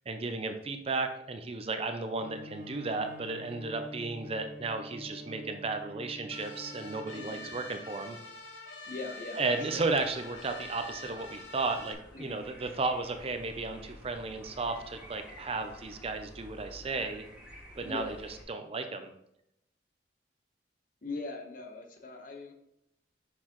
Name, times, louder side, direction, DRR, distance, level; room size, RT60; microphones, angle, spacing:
voice 1, 0.1-8.2 9.3-17.2 17.8-19.1, right 3 dB, 35° right, 7 dB, 0.5 m, -34 dB
Bowed string instrument, 2.2-7.8, equal, 60° right, 1.4 m, -47 dB
sound 1, 6.3-11.9, left 2 dB, 85° left, 1.0 m, -46 dB
voice 2, 7.1-7.5 8.8-9.9 12.1-12.4 17.8-18.2 21.0-22.5, left 3 dB, 50° left, 3 dB, 1.1 m, -41 dB
sound 2, 9.7-18.4, equal, 5° right, 2.2 m, -52 dB
6.3 x 5.8 x 3.0 m, 0.79 s
head